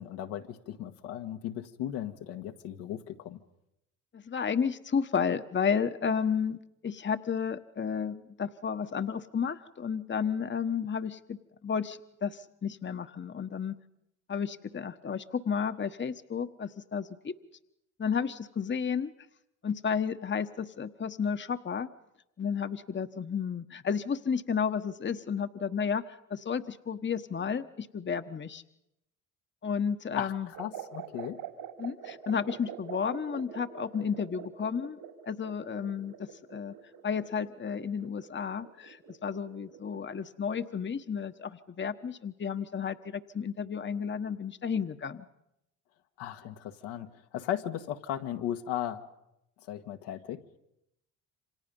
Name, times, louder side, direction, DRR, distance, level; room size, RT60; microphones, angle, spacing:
voice 1, 0.0-3.4 30.1-31.4 46.2-49.1 49.7-50.4, left 11 dB, 75° left, 5 dB, 1.7 m, -36 dB
voice 2, 4.1-6.6 6.8-13.8 14.3-17.3 18.0-19.1 19.6-21.9 22.4-28.6 29.6-30.5 31.8-35.0 35.3-36.7 37.0-45.3, left 6 dB, 25° left, 10 dB, 1.2 m, -32 dB
sound 1, 30.5-40.1, right 9 dB, 65° right, 3.6 m, -45 dB
28.0 x 26.0 x 5.4 m, 0.83 s
hypercardioid pair, 60°, 40 cm